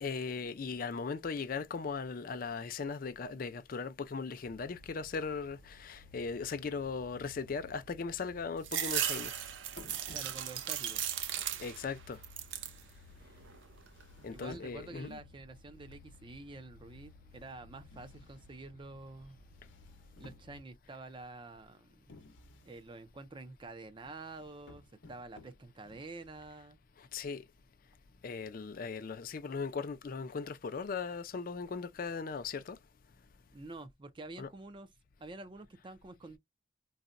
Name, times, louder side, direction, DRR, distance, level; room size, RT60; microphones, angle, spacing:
voice 1, 0.0-9.3 11.6-12.2 14.2-15.2 27.1-27.4 28.2-32.8 34.4-34.5, left 5 dB, 50° left, 0.4 m, -38 dB
sound 1, 4.4-20.6, left 3 dB, 65° right, 1.0 m, -58 dB
sound 2, 8.6-11.9 12.2-12.8 13.3-14.0, right 10 dB, 85° right, 0.5 m, -36 dB
sound 3, 9.7-10.8 12.0-13.2 13.9-15.0 15.9-16.4 17.8-18.8 19.4-20.9 22.1-22.8 24.0-26.8, left 2 dB, 85° left, 0.7 m, -58 dB
voice 2, 10.1-11.0 14.3-19.4 20.2-22.1 22.6-26.8 33.5-34.9 35.2-36.4, right 2 dB, 25° right, 0.4 m, -48 dB
4.0 x 2.1 x 2.5 m
head